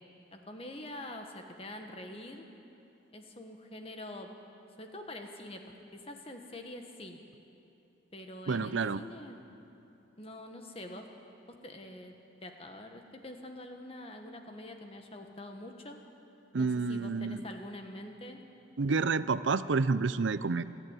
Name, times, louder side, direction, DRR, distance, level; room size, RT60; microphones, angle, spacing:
voice 1, 0.3-2.5 3.1-4.3 4.8-7.2 8.1-9.4 10.2-11.1 11.5-12.2 12.4-16.0 16.6-18.4, left 1 dB, 30° left, 4 dB, 1.5 m, -45 dB
voice 2, 8.5-9.0 16.5-17.4 18.8-20.6, right 4 dB, 85° right, 15 dB, 0.6 m, -29 dB
28.5 x 10.5 x 9.0 m, 2.9 s
head